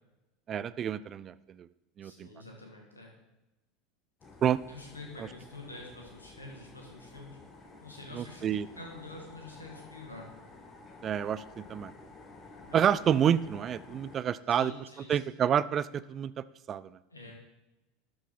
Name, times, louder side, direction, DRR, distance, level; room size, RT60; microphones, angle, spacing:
voice 1, 0.5-1.7 2.0-2.3 4.4-4.6 8.1-8.7 11.0-11.9 12.7-14.7 15.1-16.9, right 9 dB, 35° right, 17 dB, 0.3 m, -29 dB
voice 2, 2.0-3.1 4.7-7.4 7.8-10.3 12.7-12.9 14.5-15.2 17.1-17.3, left 2 dB, 85° left, 0 dB, 1.8 m, -47 dB
sound 1, 4.2-14.2, left 3 dB, 30° left, 1.3 m, -52 dB
12.0 x 4.8 x 4.1 m, 0.99 s
figure-of-eight pair, 75°, 0 cm